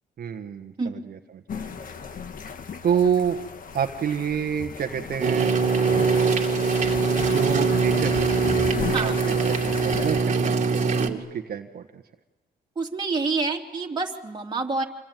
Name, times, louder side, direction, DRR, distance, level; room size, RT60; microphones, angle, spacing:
voice 1, 0.2-1.7 2.8-3.4 3.7-5.5 7.2-8.3 9.0-12.0, right 8 dB, 65° right, 4 dB, 1.4 m, -28 dB
sound 1, 1.5-10.2, left 6 dB, 55° left, 1.5 m, -34 dB
sound 2, 5.2-11.1, right 5 dB, 45° right, 2.5 m, -22 dB
voice 2, 12.7-14.8, right 4 dB, 25° right, 0 dB, 3.0 m, -27 dB
28.0 x 23.0 x 9.2 m, 1.2 s
cardioid pair, 120°, 17 cm